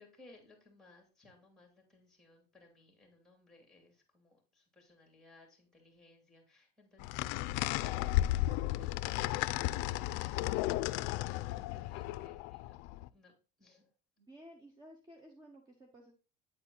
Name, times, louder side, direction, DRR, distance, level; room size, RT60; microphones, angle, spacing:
voice 1, 0.0-10.8 11.1-12.8 13.1-13.9, left 2 dB, ahead, 4 dB, 2.4 m, -62 dB
sound 1, 7.0-13.1, left 16 dB, 65° left, 0.4 m, -34 dB
voice 2, 14.2-16.1, equal, 20° right, 2 dB, 1.0 m, -55 dB
8.8 x 4.4 x 3.9 m, 0.34 s
cardioid pair, 145°, 20 cm